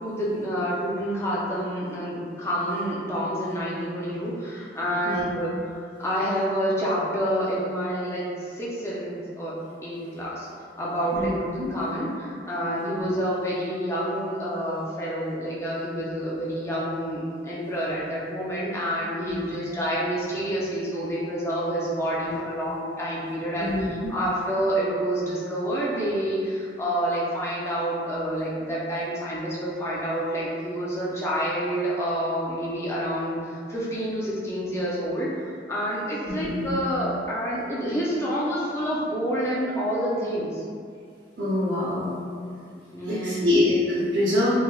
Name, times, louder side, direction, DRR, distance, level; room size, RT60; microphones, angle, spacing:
voice 1, 0.0-5.5 6.0-9.6 9.8-10.5 10.8-23.7 24.1-35.3 35.7-40.6 42.9-43.5, equal, 15° left, -7 dB, 0.4 m, -28 dB
voice 2, 23.6-23.9 36.2-36.7 41.4-42.2 43.0-44.6, left 1 dB, 80° right, -10 dB, 0.7 m, -25 dB
3.3 x 2.0 x 2.3 m, 2.2 s
head